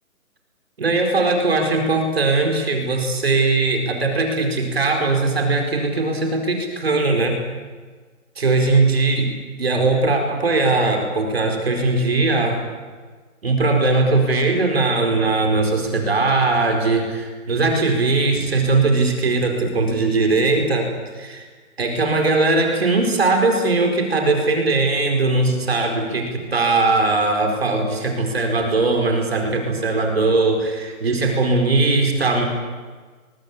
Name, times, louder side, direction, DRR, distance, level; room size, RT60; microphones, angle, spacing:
voice 1, 0.8-7.4 8.4-9.3 9.6-12.7 13.4-21.4 21.8-32.5, right 3 dB, 45° right, 4 dB, 4.6 m, -20 dB
23.0 x 22.5 x 8.7 m, 1.4 s
hypercardioid pair, 175°, 43 cm